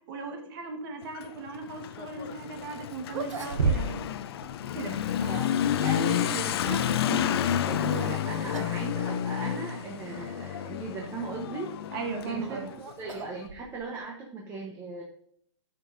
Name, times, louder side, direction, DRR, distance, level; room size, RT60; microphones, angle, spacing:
voice 1, 0.1-4.0 4.7-5.0 11.9-12.7, right 4 dB, 45° right, 4 dB, 1.4 m, -37 dB
Motorcycle / Accelerating revving vroom, 1.0-13.3, left 10 dB, 50° left, 0.5 m, -30 dB
sound 1, 2.6-2.7 3.1-4.2 4.4-4.5 5.4-6.1 7.9-8.2 8.5-8.8 9.1-9.2 10.0-10.1 11.9-14.0, right 4 dB, 80° right, 1.0 m, -33 dB
voice 2, 5.8-11.7 12.2-12.6 13.0-15.0, right 3 dB, 15° right, 0 dB, 0.9 m, -37 dB
12.5 x 5.2 x 2.6 m, 0.66 s
hypercardioid pair, 145°, 16 cm